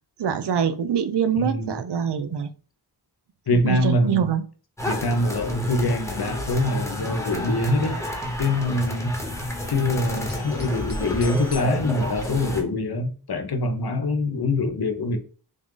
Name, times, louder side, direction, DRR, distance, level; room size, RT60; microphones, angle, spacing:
voice 1, 0.2-2.5 3.5-4.4, right 8 dB, 80° right, 0.5 m, -24 dB
voice 2, 1.4-1.8 3.5-4.3 4.8-8.0 8.4-9.1 9.7-15.2, left 2 dB, 65° left, 0.8 m, -24 dB
sound 1, 4.8-12.6, left 1 dB, 5° left, 1.1 m, -30 dB
sound 2, 7.3-7.9 8.2-9.8 10.1-11.6, left 2 dB, 25° right, 1.4 m, -44 dB
3.6 x 2.4 x 3.7 m
wide cardioid pair, 55°, 41 cm